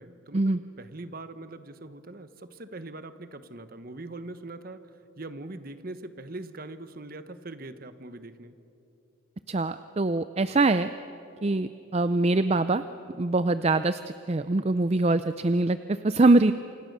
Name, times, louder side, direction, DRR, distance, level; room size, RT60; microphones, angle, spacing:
voice 1, 0.0-4.8 5.2-8.6, right 2 dB, 45° right, 11 dB, 1.2 m, -42 dB
voice 2, 9.5-10.9 11.4-12.8 13.2-14.0 14.3-16.5, right 2 dB, 30° right, 12 dB, 0.5 m, -23 dB
28.0 x 26.5 x 6.7 m, 2.9 s
head